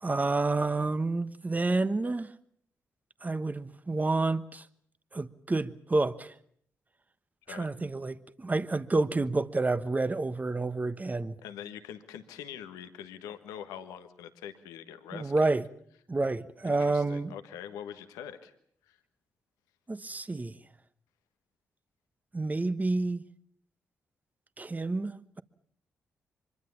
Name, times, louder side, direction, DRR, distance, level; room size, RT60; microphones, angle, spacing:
voice 1, 0.0-2.3 3.2-4.6 5.1-6.3 7.5-11.4 15.1-15.7 16.1-17.3 19.9-20.6 22.3-23.2 24.6-25.4, right 3 dB, 25° right, 1.2 m, -29 dB
voice 2, 11.4-15.6 16.6-18.5 18.9-19.0, left 9 dB, 85° left, 1.4 m, -44 dB
24.5 x 22.5 x 7.1 m
hypercardioid pair, 40°, 6 cm